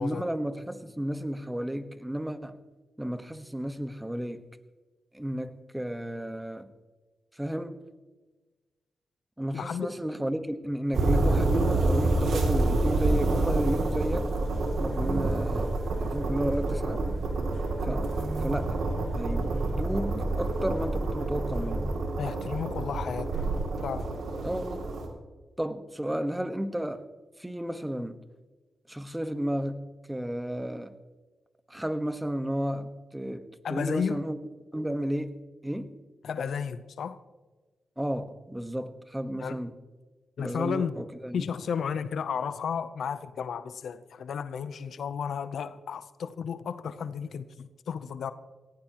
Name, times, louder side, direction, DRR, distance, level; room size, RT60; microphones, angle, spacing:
voice 1, 0.0-2.6 3.0-4.4 5.1-6.7 7.4-7.8 9.4-14.3 14.8-17.0 17.8-18.1 18.4-18.9 19.1-21.8 24.4-24.8 25.6-27.1 27.4-28.2 28.9-31.0 31.7-34.4 34.7-35.9 38.0-39.7 40.4-41.4, equal, 10° right, 1.3 m, -33 dB
voice 2, 9.5-9.9 22.2-23.4 23.8-24.1 33.6-34.2 36.2-37.2 39.4-39.6 40.4-41.0 41.3-48.3, left 7 dB, 80° left, 0.7 m, -33 dB
sound 1, 10.9-25.1, right 2 dB, 80° right, 2.7 m, -29 dB
sound 2, 11.8-22.0, right 2 dB, 35° right, 1.1 m, -33 dB
18.5 x 15.5 x 3.0 m
cardioid pair, 60°, 0 cm